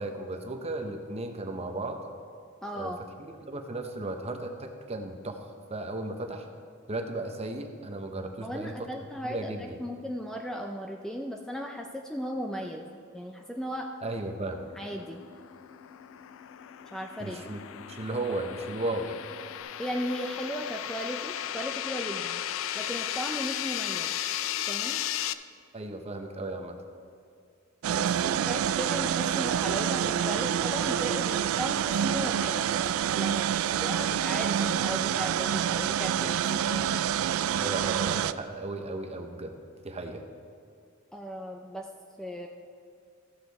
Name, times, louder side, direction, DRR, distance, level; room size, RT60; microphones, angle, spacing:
voice 1, 0.0-2.0 2.8-2.9 3.2-5.4 5.7-6.5 6.9-8.9 9.2-9.8 14.0-14.7 17.2-19.2 25.7-26.8 37.6-39.6 39.8-40.2, right 2 dB, 30° right, 5 dB, 0.8 m, -35 dB
voice 2, 2.6-3.0 8.4-13.9 14.8-15.2 16.9-17.4 19.8-22.4 22.7-24.1 24.7-25.0 27.9-37.0 41.1-41.9 42.2-42.5, equal, 5° left, 2 dB, 0.4 m, -36 dB
sound 1, 14.6-19.6, left 6 dB, 40° left, 1.3 m, -54 dB
sound 2, 14.9-25.3, left 12 dB, 70° left, 0.4 m, -35 dB
sound 3, 27.8-38.3, right 9 dB, 80° right, 0.3 m, -27 dB
14.5 x 6.7 x 4.0 m, 2.4 s
head